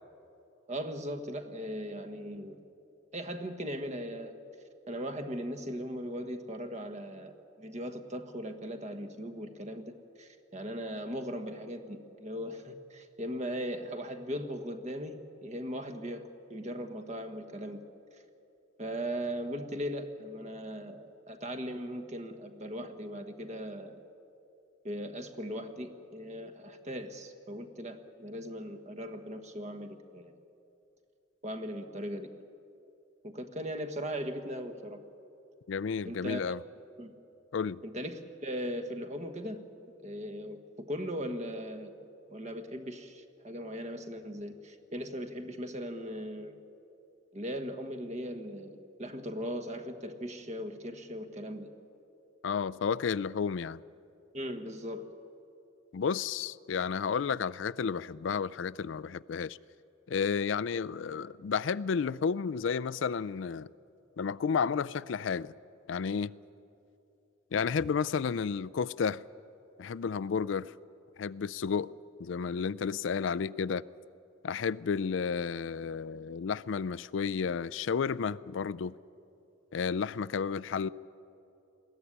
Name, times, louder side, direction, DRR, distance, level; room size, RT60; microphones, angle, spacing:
voice 1, 0.7-2.6 3.1-4.3 4.9-9.8 10.2-17.8 18.8-24.0 24.8-30.3 31.4-32.3 33.2-35.0 36.0-36.4 37.0-37.1 37.8-39.6 40.0-41.9 42.3-46.6 47.3-51.7 54.3-55.0, equal, 35° right, 1.3 m, -38 dB
voice 2, 35.7-36.6 37.5-37.8 52.4-53.8 55.9-59.6 60.1-63.7 64.2-65.5 65.9-66.3 67.5-69.2 69.8-70.7 71.2-71.9 72.2-73.8 74.4-79.0 79.7-80.9, left 6 dB, 70° left, 0.4 m, -32 dB
21.0 x 15.0 x 10.0 m
head